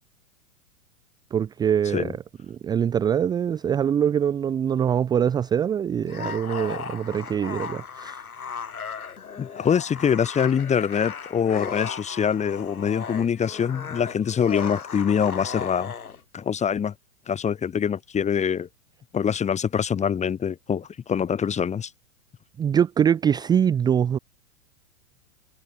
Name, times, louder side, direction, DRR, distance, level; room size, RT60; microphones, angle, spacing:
voice 1, 1.3-2.2 2.5-8.2 22.6-24.2, right 8 dB, 10° right, 0.5 m, -23 dB
sound 1, 6.0-16.2, left 6 dB, 85° left, 2.4 m, -36 dB
voice 2, 9.4-15.9 16.3-16.9 17.3-18.7 19.1-21.9, left 7 dB, 15° left, 1.4 m, -24 dB
hypercardioid pair, 105°, 43 cm